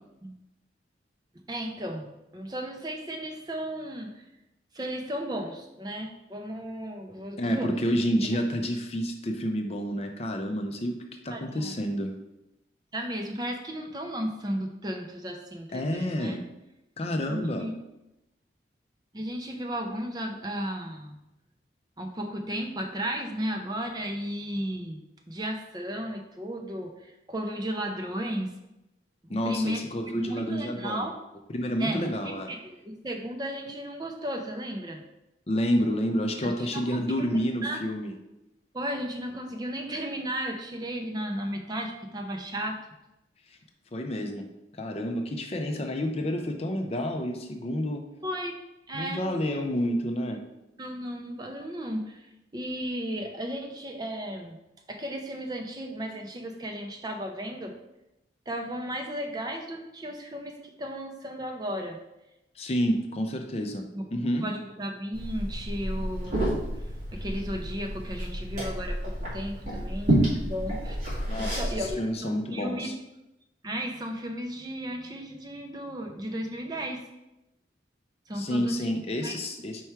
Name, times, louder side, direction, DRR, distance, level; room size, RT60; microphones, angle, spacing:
voice 1, 1.5-4.2 4.7-7.7 8.2-8.3 11.3-11.7 12.9-16.4 17.3-17.7 19.1-21.2 22.0-25.0 25.3-28.5 29.2-29.8 30.1-31.1 31.8-35.0 36.4-37.8 38.7-42.8 48.2-48.5 48.9-49.2 50.8-54.6 54.9-57.7 58.5-62.0 63.9-66.6 67.1-71.0 71.4-72.9 73.6-77.0 78.3-79.4, equal, 20° right, 3 dB, 0.6 m, -34 dB
voice 2, 7.4-12.1 15.7-16.4 17.0-17.7 29.3-31.1 31.5-32.5 35.5-38.1 43.9-44.5 44.8-48.0 48.9-50.4 62.6-64.5 71.3-72.9 78.3-79.8, equal, 35° left, 4 dB, 0.5 m, -29 dB
Liquid, 65.1-71.9, right 1 dB, 40° right, 2.2 m, -30 dB
4.6 x 4.6 x 4.4 m, 0.92 s
head